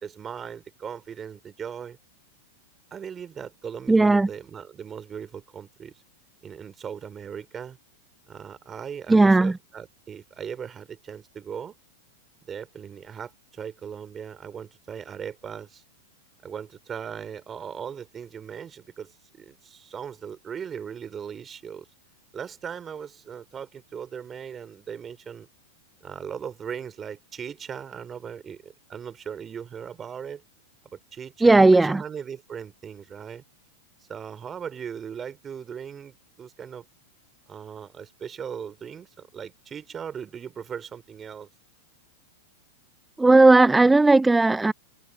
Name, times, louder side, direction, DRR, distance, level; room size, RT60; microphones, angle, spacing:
voice 1, 0.0-2.0 2.9-5.9 6.4-7.8 8.3-11.7 12.4-15.8 16.4-21.9 22.3-25.5 26.0-30.4 30.9-33.4 34.1-36.8 37.5-41.5, right 7 dB, 25° right, 3.3 m, -38 dB
voice 2, 3.9-4.3 9.1-9.6 31.4-32.0 43.2-44.7, right 2 dB, 10° right, 0.5 m, -16 dB
hypercardioid pair, 105°, 0 cm